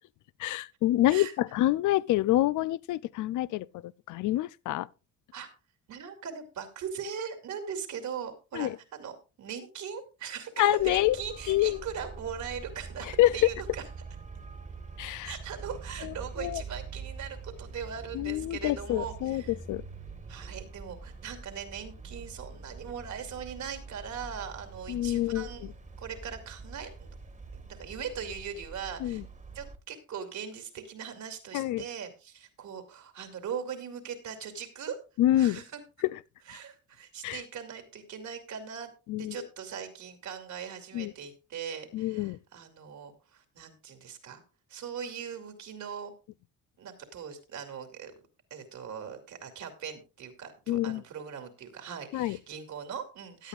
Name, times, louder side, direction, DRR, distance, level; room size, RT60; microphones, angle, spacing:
voice 1, 0.4-4.9 8.5-8.8 10.6-11.2 11.5-11.8 13.2-13.5 15.0-15.3 16.0-16.6 18.1-19.8 24.9-25.7 29.0-29.2 31.5-31.8 35.2-35.6 37.2-37.4 39.1-39.5 40.9-41.1 41.9-42.4 50.7-51.0 52.1-52.4, left 15 dB, 80° left, 0.5 m, -27 dB
voice 2, 5.9-13.8 15.2-19.6 20.3-25.6 26.0-27.1 27.5-29.2 29.5-35.0 35.4-35.8 36.5-38.9 39.2-44.4 44.7-46.1 46.8-48.1 48.5-53.5, right 7 dB, 70° right, 2.6 m, -40 dB
Traffic noise roadway noise, 10.8-29.8, right 4 dB, 25° right, 1.5 m, -44 dB
16.5 x 10.0 x 2.5 m
cardioid pair, 90°, 30 cm